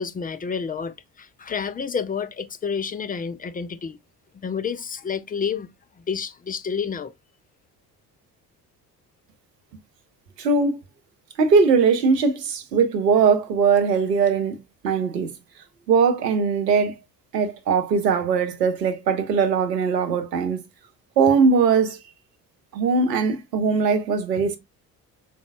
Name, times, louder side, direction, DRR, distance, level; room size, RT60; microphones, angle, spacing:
voice 1, 0.0-4.0 4.3-5.7 6.0-7.1, left 6 dB, 20° left, 0.4 m, -29 dB
voice 2, 10.4-10.8 11.4-14.6 14.8-15.3 15.9-16.9 17.3-20.6 21.2-22.0 22.7-24.6, right 5 dB, 90° right, 0.7 m, -20 dB
5.3 x 4.1 x 2.3 m
figure-of-eight pair, 50°, 48 cm